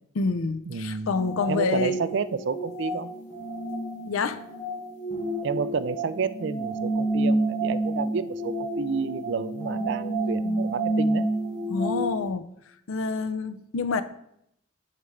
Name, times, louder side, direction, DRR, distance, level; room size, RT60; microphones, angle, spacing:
voice 1, 0.1-2.0 4.1-4.4 11.7-12.5 12.9-14.0, left 4 dB, 85° left, 11 dB, 0.5 m, -27 dB
voice 2, 0.7-1.1 1.4-3.1 5.4-11.3, right 5 dB, 60° right, 14 dB, 0.4 m, -30 dB
sound 1, 1.1-12.3, right 1 dB, 35° left, 1.8 m, -29 dB
9.9 x 4.9 x 3.2 m, 0.77 s
head